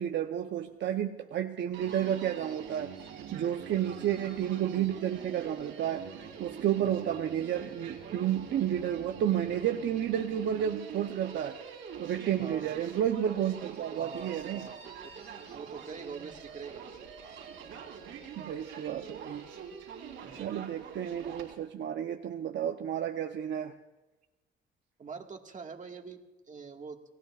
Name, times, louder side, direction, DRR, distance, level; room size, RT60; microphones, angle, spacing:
voice 1, 0.0-2.9 3.3-11.6 12.0-14.7 18.4-19.4 20.3-23.7, right 10 dB, 65° right, 4 dB, 0.9 m, -31 dB
Human voice, 1.7-21.5, right 7 dB, 90° right, 3.6 m, -45 dB
voice 2, 12.4-12.7 14.0-17.1 20.2-20.7 25.0-26.2 26.5-27.0, right 5 dB, 40° right, 3 dB, 1.9 m, -45 dB
29.0 x 18.0 x 2.5 m, 1.1 s
cardioid pair, 90°, 20 cm